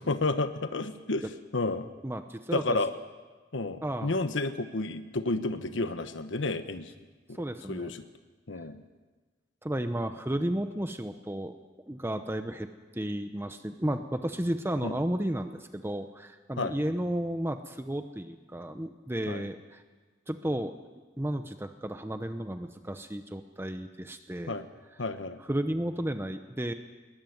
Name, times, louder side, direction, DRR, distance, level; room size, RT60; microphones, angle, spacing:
voice 1, 0.1-1.3 1.5-1.9 2.5-2.9 3.5-6.9 7.3-7.4 7.7-8.0 8.5-8.8 14.8-15.0 16.6-16.8 19.3-19.4 24.5-24.6 25.0-25.4, left 2 dB, 80° left, 9 dB, 1.2 m, -31 dB
voice 2, 2.0-2.8 3.8-4.2 7.3-7.9 9.6-11.5 11.9-19.8 20.3-20.7 21.2-24.6 25.5-26.7, right 1 dB, 15° right, 8 dB, 0.8 m, -33 dB
21.5 x 20.5 x 9.4 m, 1.3 s
head